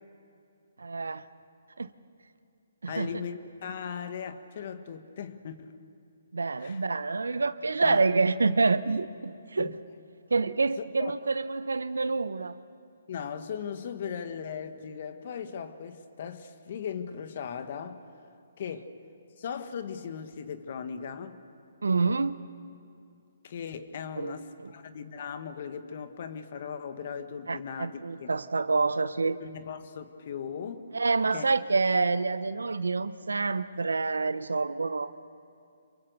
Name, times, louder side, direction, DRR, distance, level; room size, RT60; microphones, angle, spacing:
voice 1, 0.8-1.2 1.8-1.9 2.8-3.1 6.3-9.7 10.3-12.6 21.8-22.4 24.2-24.3 24.6-24.7 27.5-29.4 30.9-35.1, right 4 dB, 85° right, 0.8 m, -27 dB
voice 2, 2.9-5.7 6.6-6.8 7.8-8.0 9.6-9.7 11.0-11.1 13.1-18.0 18.6-18.9 19.4-21.4 23.4-28.3 29.4-30.8 31.3-31.5, left 7 dB, 50° left, 1.6 m, -38 dB
27.5 x 23.0 x 6.8 m
hypercardioid pair, 140°, 0 cm